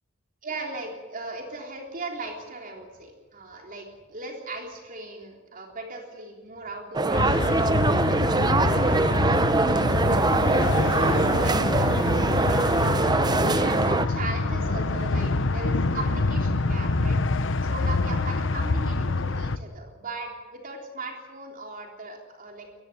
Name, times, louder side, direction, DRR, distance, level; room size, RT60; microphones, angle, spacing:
voice 1, 0.4-8.7 9.2-12.0 12.4-12.6 13.3-17.2 17.6-22.7, right 2 dB, 45° right, 2 dB, 3.7 m, -38 dB
sound 1, 6.9-14.1, right 3 dB, 20° right, 0.7 m, -23 dB
sound 2, 7.1-19.6, left 3 dB, 70° left, 1.0 m, -25 dB
22.0 x 15.0 x 9.9 m, 1.2 s
head